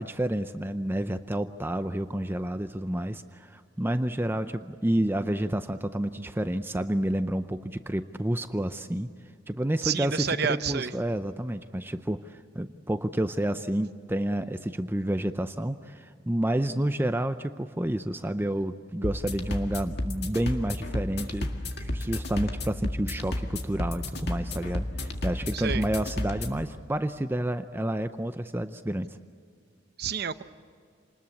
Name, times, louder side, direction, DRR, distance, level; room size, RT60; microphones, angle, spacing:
voice 1, 0.0-9.1 9.5-21.5 21.8-29.2, right 1 dB, 10° right, 10 dB, 0.6 m, -29 dB
voice 2, 9.8-10.9 25.5-25.8 30.0-30.4, right 7 dB, 55° right, 12 dB, 0.7 m, -29 dB
sound 1, 19.0-26.7, left 1 dB, 60° left, 2.0 m, -32 dB
28.0 x 20.5 x 8.4 m, 2.2 s
head